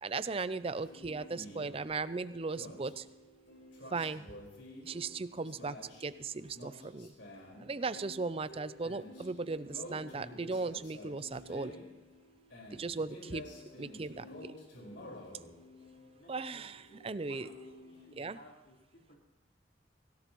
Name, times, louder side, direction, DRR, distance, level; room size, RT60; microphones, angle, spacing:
voice 1, 0.0-3.0 3.9-4.2 4.8-7.1 7.6-11.7 12.7-13.5 13.8-14.5 16.3-17.5 18.2-18.4, right 4 dB, 30° right, 14 dB, 0.4 m, -37 dB
sound 1, 0.7-18.1, left 1 dB, 80° left, 4.7 m, -51 dB
voice 2, 0.9-1.5 8.8-8.9 16.1-16.9 17.1-19.2, left 1 dB, 60° left, -4 dB, 4.1 m, -59 dB
24.0 x 17.0 x 3.0 m, 1.1 s
head